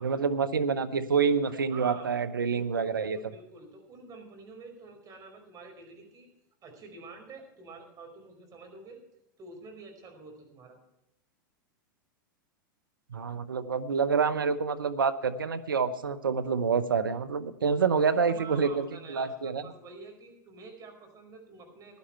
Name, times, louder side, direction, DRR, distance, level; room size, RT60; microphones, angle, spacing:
voice 1, 0.0-3.2 13.1-19.6, right 5 dB, 90° right, 12 dB, 0.9 m, -27 dB
voice 2, 1.7-2.2 2.5-6.3 6.6-9.0 9.4-10.8 17.9-22.0, right 3 dB, 30° right, 3 dB, 5.0 m, -48 dB
16.0 x 11.5 x 4.4 m, 0.84 s
hypercardioid pair, 100°, 11 cm